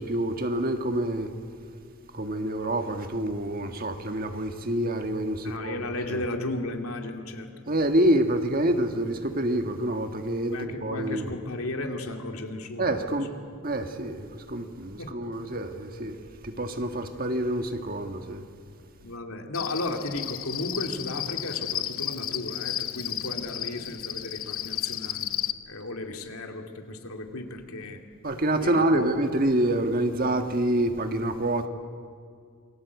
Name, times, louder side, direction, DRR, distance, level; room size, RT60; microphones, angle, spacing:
voice 1, 0.0-1.3 2.1-5.8 6.1-6.2 7.7-11.3 12.8-13.3 13.6-16.2 16.4-18.4 28.2-31.7, right 1 dB, 40° right, 1.7 m, -27 dB
voice 2, 5.4-7.5 10.5-13.2 15.0-15.2 19.0-25.3 25.6-28.0 28.6-29.1, left 2 dB, 90° left, 2.6 m, -34 dB
Cricket, 19.5-25.5, left 12 dB, 75° left, 1.0 m, -33 dB
28.0 x 22.5 x 8.3 m
head